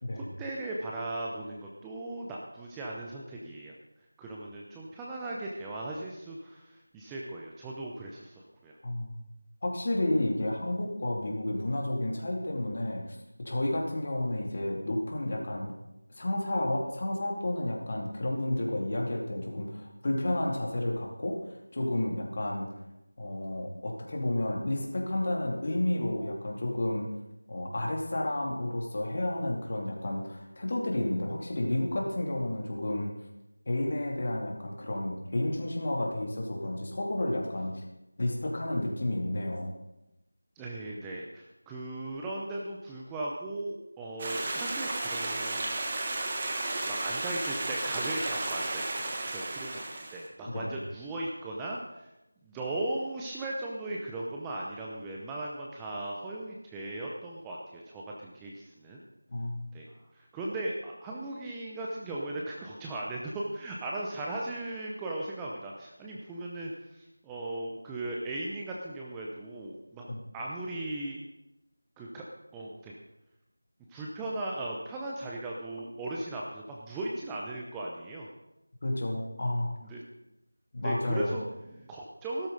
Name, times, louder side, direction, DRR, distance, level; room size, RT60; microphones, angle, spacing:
voice 1, 0.1-3.7 4.2-8.8 40.6-45.7 46.8-52.1 52.4-59.0 59.7-59.9 60.1-70.1 70.3-71.2 72.0-72.2 72.5-73.0 73.9-78.3 79.8-80.0 80.8-82.5, right 2 dB, 5° right, -3 dB, 0.7 m, -37 dB
voice 2, 8.8-9.2 9.6-15.7 16.1-22.7 23.2-27.1 27.5-33.1 33.7-37.8 38.2-39.7 50.5-50.7 59.3-59.7 70.1-70.2 78.8-79.7 80.7-81.4, left 1 dB, 40° left, 0 dB, 2.6 m, -31 dB
Stream, 44.2-50.3, right 2 dB, 25° right, 1.5 m, -33 dB
14.5 x 13.0 x 4.0 m, 0.93 s
figure-of-eight pair, 170°, 0 cm